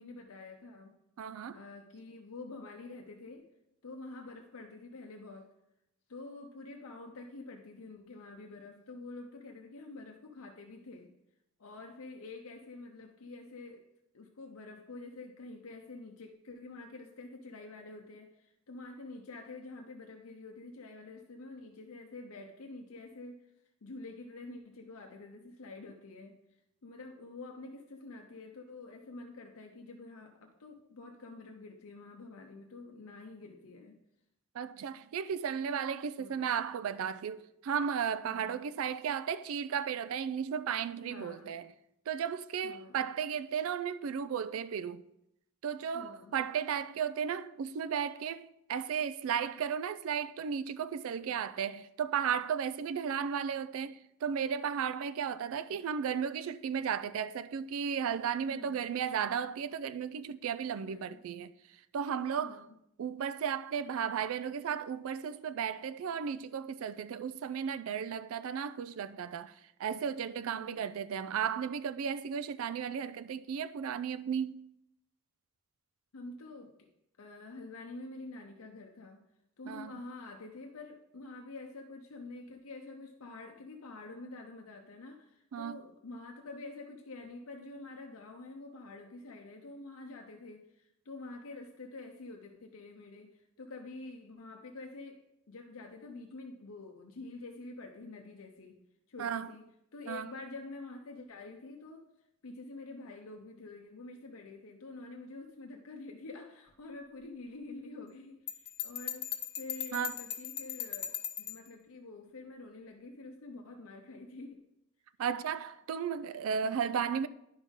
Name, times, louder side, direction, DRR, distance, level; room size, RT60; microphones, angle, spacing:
voice 1, 0.0-1.0 1.5-3.5 3.8-5.5 6.1-11.1 11.6-13.8 14.1-23.5 23.8-26.4 26.8-34.0 36.2-36.5 38.2-38.6 41.0-41.5 42.6-43.1 45.9-46.3 51.3-51.4 58.5-58.9 60.7-61.2 62.4-62.8 70.5-70.9 76.1-76.9 77.2-79.2 79.6-98.8 99.1-102.1 102.4-114.6 116.6-116.8, left 3 dB, 80° left, 0.7 m, -47 dB
voice 2, 1.2-1.6 34.5-41.7 42.1-45.0 45.6-61.5 61.9-62.6 63.0-69.5 69.8-74.6 79.7-79.9 85.5-85.8 99.2-99.5 100.1-100.3 109.9-110.1 115.2-117.3, right 7 dB, 70° right, 0.3 m, -34 dB
Bell, 108.5-111.7, left 10 dB, 50° left, 0.6 m, -39 dB
10.5 x 5.4 x 3.6 m
head